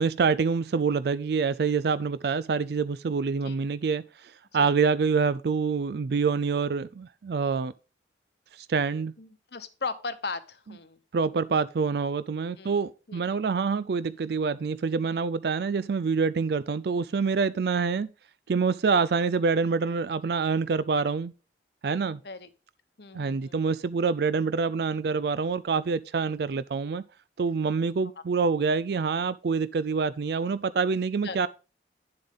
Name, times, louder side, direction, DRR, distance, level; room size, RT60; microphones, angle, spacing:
voice 1, 0.0-7.7 8.5-9.1 11.1-18.1 18.5-21.3 21.8-22.2 23.1-27.0 27.4-31.5, right 5 dB, 60° right, 0.4 m, -26 dB
voice 2, 9.2-11.0 12.6-12.8 13.1-13.2 22.2-22.5 23.0-23.8 31.2-31.4, left 4 dB, 65° left, 1.0 m, -37 dB
10.5 x 7.5 x 3.6 m
head